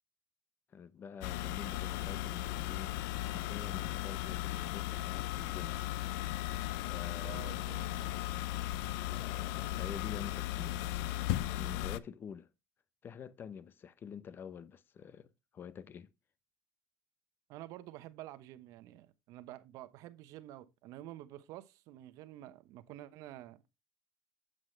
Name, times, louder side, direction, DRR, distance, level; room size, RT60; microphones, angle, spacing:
voice 1, 0.7-5.8 6.9-8.0 8.6-12.5 13.0-16.1, left 7 dB, 35° left, 0.7 m, -48 dB
sound 1, 1.2-12.0, left 15 dB, 85° left, 0.4 m, -36 dB
voice 2, 7.2-7.9 17.5-23.6, right 14 dB, 70° right, 0.9 m, -49 dB
7.7 x 7.6 x 3.2 m
cardioid pair, 115°, 6 cm